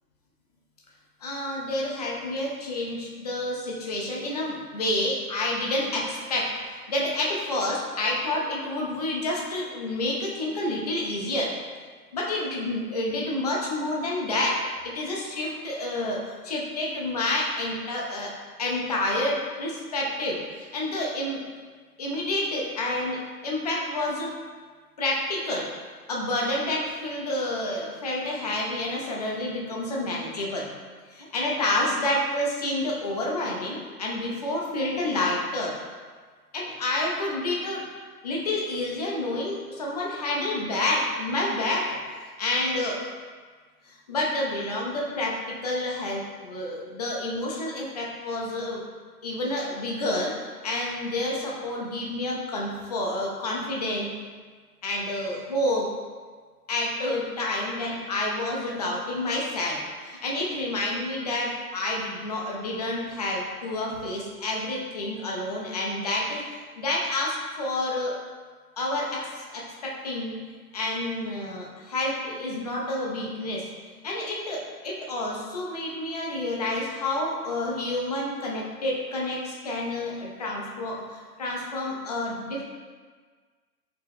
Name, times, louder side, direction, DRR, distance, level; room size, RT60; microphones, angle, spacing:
voice 1, 1.2-11.5 12.1-18.3 18.6-21.4 22.0-24.3 25.0-25.7 26.1-30.7 31.1-35.7 36.5-37.8 38.2-41.9 42.4-43.0 43.9-48.8 49.2-50.3 50.6-54.1 54.8-55.9 56.7-68.1 68.8-70.4 70.7-73.7 74.0-82.6, left 1 dB, 30° left, -3 dB, 0.4 m, -29 dB
4.7 x 2.9 x 3.4 m, 1.5 s
figure-of-eight pair, 120°, 47 cm